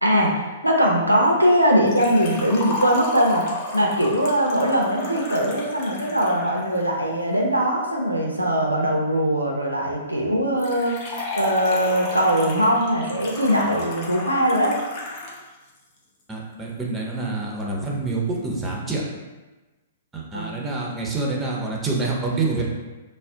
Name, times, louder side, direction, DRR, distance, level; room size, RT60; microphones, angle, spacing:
voice 1, 0.0-3.4 3.7-11.0 11.4-14.7 20.3-20.6, equal, 90° right, -1 dB, 0.4 m, -21 dB
Liquid, 1.9-6.9 10.6-15.4 15.7-15.8 16.7-16.8, left 2 dB, 35° left, 0.6 m, -33 dB
voice 2, 16.3-19.0 20.1-22.7, right 3 dB, 10° right, -2 dB, 0.5 m, -27 dB
2.4 x 2.0 x 3.5 m, 1.2 s
figure-of-eight pair, 110°, 0 cm